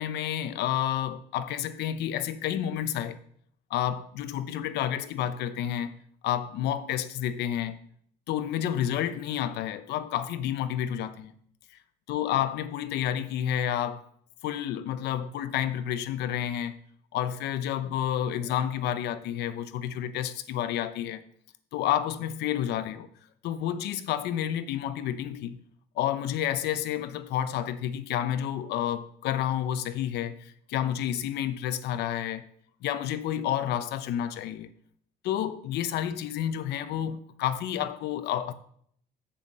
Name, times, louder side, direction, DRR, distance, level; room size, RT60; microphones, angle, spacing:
voice 1, 0.0-3.2 3.7-6.0 6.2-7.8 8.3-11.3 12.1-14.1 14.4-16.7 17.1-21.2 21.7-23.1 23.4-25.6 26.0-32.5 32.8-34.7 35.2-38.5, left 10 dB, 80° left, 0.8 m, -30 dB
7.2 x 6.8 x 7.5 m
cardioid pair, 110°, 17 cm